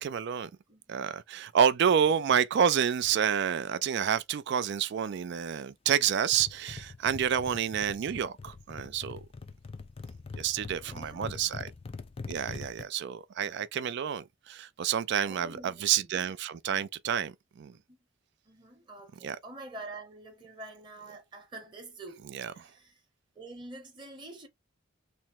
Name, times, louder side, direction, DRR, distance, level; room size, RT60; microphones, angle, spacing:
voice 1, 0.0-0.5 0.9-9.2 10.4-11.7 12.3-17.7 19.2-19.4 22.3-22.5, right 8 dB, 55° right, 0.3 m, -29 dB
voice 2, 0.7-1.0 10.8-11.6 15.2-15.9 17.7-18.0 18.5-22.3 22.5-23.0 23.3-24.5, right 2 dB, 20° right, 0.9 m, -47 dB
sound 1, 6.3-12.8, left 4 dB, 25° left, 0.3 m, -43 dB
3.4 x 2.0 x 4.3 m
head